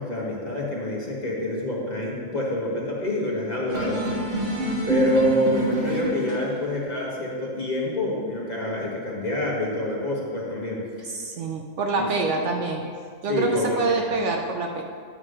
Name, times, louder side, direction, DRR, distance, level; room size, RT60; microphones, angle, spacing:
voice 1, 0.0-4.2 4.9-11.1 12.0-12.3 13.3-13.8, left 1 dB, 30° left, -3 dB, 1.3 m, -27 dB
sound 1, 3.7-6.6, right 1 dB, 45° right, 1.6 m, -26 dB
voice 2, 11.0-12.9 13.2-14.8, right 3 dB, 65° right, 2 dB, 0.9 m, -26 dB
10.0 x 3.7 x 6.4 m, 2.1 s
omnidirectional pair, 1.4 m